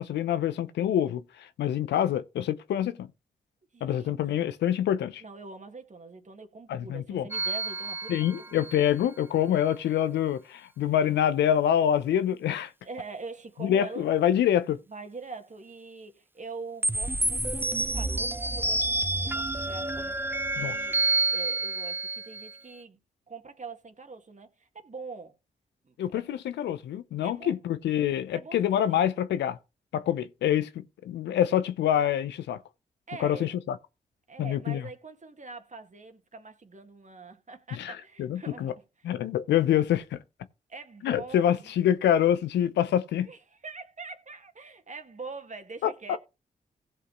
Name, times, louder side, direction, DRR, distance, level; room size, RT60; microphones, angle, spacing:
voice 1, 0.0-3.1 3.8-5.2 6.7-7.3 8.1-12.7 13.6-14.8 20.6-20.8 26.0-29.6 29.9-32.6 33.2-33.8 34.4-34.8 37.7-38.7 39.0-40.2 41.0-43.3 45.8-46.2, left 10 dB, 80° left, 0.6 m, -26 dB
voice 2, 3.7-4.5 5.2-8.7 12.8-14.2 14.9-21.1 21.3-23.0 23.3-25.4 25.8-26.4 27.2-27.5 28.3-29.1 33.1-33.5 34.3-39.1 40.7-41.7 43.2-46.2, right 4 dB, 45° right, 1.8 m, -44 dB
sound 1, 7.3-8.8 16.8-22.6, right 2 dB, 10° right, 0.5 m, -29 dB
16.5 x 5.6 x 3.1 m
supercardioid pair, 40°, 18 cm